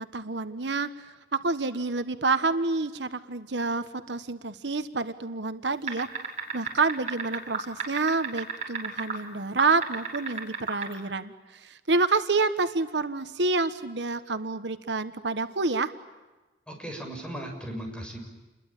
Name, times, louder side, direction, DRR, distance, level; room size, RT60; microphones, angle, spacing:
voice 1, 0.0-6.1 6.5-15.9, right 3 dB, 80° right, 10 dB, 1.3 m, -28 dB
sound 1, 5.9-9.1 9.6-10.9, right 5 dB, 40° right, 6.3 m, -31 dB
voice 2, 16.7-18.2, right 1 dB, 5° left, 2 dB, 6.9 m, -37 dB
29.5 x 22.0 x 8.9 m, 1.2 s
head